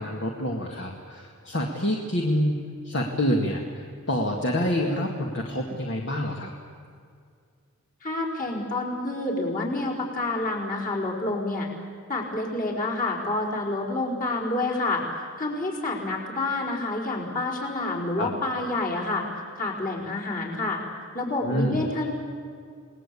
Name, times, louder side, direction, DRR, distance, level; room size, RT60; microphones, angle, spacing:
voice 1, 0.0-6.5 18.2-18.3 21.4-21.8, left 1 dB, 55° left, 1 dB, 2.1 m, -27 dB
voice 2, 8.0-11.7 12.1-20.8 21.1-22.1, left 2 dB, 40° left, -2 dB, 4.8 m, -28 dB
29.0 x 19.5 x 8.6 m, 2.2 s
head